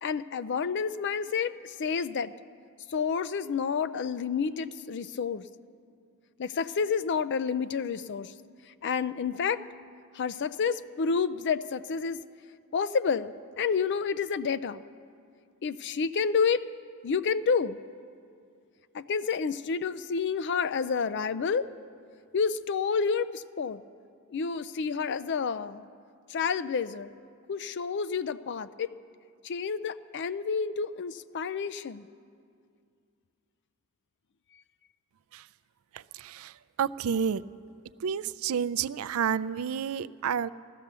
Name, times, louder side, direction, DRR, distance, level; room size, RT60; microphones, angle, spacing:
voice 1, 0.0-2.3 2.9-5.4 6.4-8.3 8.8-9.6 10.2-12.2 12.7-14.8 15.6-16.6 17.0-17.8 18.9-21.7 22.3-23.8 24.3-25.9 26.3-27.1 27.5-28.7 29.4-32.0, left 5 dB, 55° left, 14 dB, 0.4 m, -29 dB
voice 2, 35.9-37.4 38.0-40.5, right 7 dB, 70° right, 14 dB, 0.4 m, -30 dB
16.0 x 13.0 x 6.8 m, 2.3 s
head